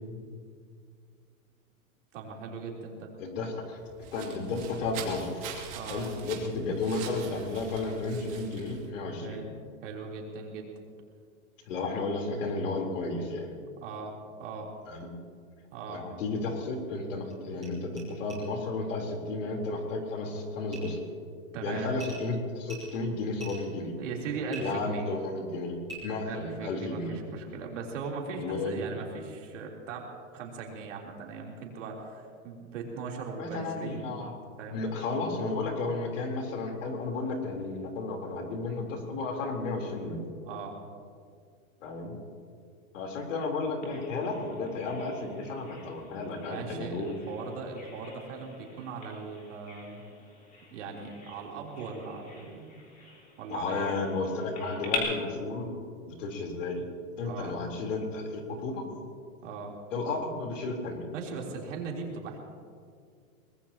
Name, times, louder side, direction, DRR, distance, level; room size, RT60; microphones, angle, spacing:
voice 1, 2.1-3.1 5.7-6.0 9.2-9.5 9.8-10.7 13.8-14.1 14.4-14.7 15.7-16.0 21.5-21.9 24.0-25.1 26.3-30.0 30.3-34.2 34.6-34.8 40.5-40.7 46.3-50.0 50.7-52.8 53.4-53.9 57.2-57.6 59.4-59.7 61.1-62.4, right 4 dB, 60° right, -1 dB, 3.5 m, -39 dB
voice 2, 3.2-3.8 4.1-5.5 5.9-9.4 11.6-13.5 14.9-15.1 15.9-21.0 21.6-23.9 24.6-27.2 28.4-28.8 33.4-34.3 34.7-40.3 41.8-42.1 42.9-47.1 53.5-55.8 56.0-56.9 57.2-58.9 59.9-61.0, left 3 dB, 60° left, 1 dB, 3.6 m, -33 dB
sound 1, 3.7-8.9, right 7 dB, 30° right, 2.3 m, -44 dB
sound 2, 17.3-17.4 17.6-17.7 18.0-18.1 18.3-18.4 20.7-21.0 21.9-22.2 22.6-23.7 24.5-24.6 25.8-26.0, right 4 dB, 5° right, 0.3 m, -44 dB
Bird vocalization bird call bird song, 43.8-55.0, left 5 dB, 20° left, 3.4 m, -44 dB
24.0 x 20.0 x 2.9 m, 2.2 s
supercardioid pair, 160°, 43 cm